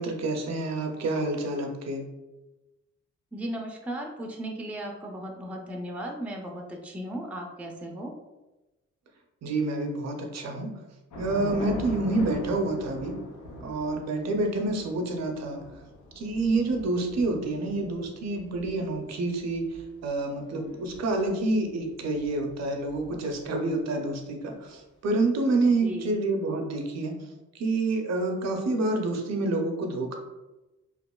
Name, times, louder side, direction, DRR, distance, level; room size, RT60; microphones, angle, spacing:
voice 1, 0.0-2.1 9.4-10.7 11.2-13.2 13.6-15.6 16.2-27.2 27.5-30.2, right 2 dB, 60° right, 3 dB, 0.5 m, -28 dB
voice 2, 3.3-8.1 25.8-26.2, right 1 dB, 5° right, 1 dB, 0.4 m, -36 dB
Thunder / Rain, 11.1-23.6, left 1 dB, 75° left, 0.6 m, -43 dB
2.9 x 2.4 x 2.2 m, 1.0 s
cardioid pair, 75°, 30 cm